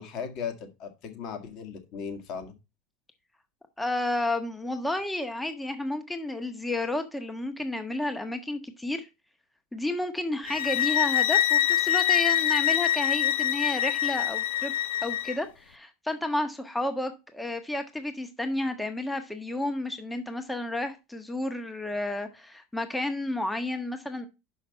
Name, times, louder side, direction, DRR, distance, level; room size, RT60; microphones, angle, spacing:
voice 1, 0.0-2.5, left 6 dB, 50° left, 7 dB, 1.7 m, -37 dB
voice 2, 3.8-9.1 9.7-14.7 15.0-24.3, left 1 dB, 5° left, 8 dB, 0.9 m, -31 dB
sound 1, 10.5-15.4, left 12 dB, 80° left, 0.5 m, -25 dB
5.7 x 5.7 x 5.5 m, 0.26 s
supercardioid pair, 140°, 0 cm